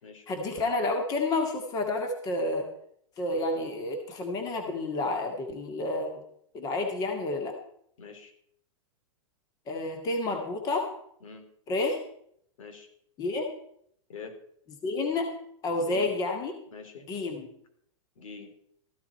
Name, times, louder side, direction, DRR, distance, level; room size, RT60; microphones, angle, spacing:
voice 1, 0.3-2.7 3.2-6.2 6.5-7.6 9.7-10.9 11.7-12.0 13.2-13.5 14.8-15.4 15.6-16.5 17.1-17.5, left 2 dB, 20° left, 4 dB, 2.0 m, -30 dB
voice 2, 8.0-8.3 11.2-11.4 12.6-12.9 14.1-14.3 15.9-16.1 16.7-17.1 18.2-18.5, left 5 dB, 80° left, 5 dB, 3.5 m, -43 dB
14.5 x 13.0 x 4.4 m, 0.68 s
supercardioid pair, 165°, 17 cm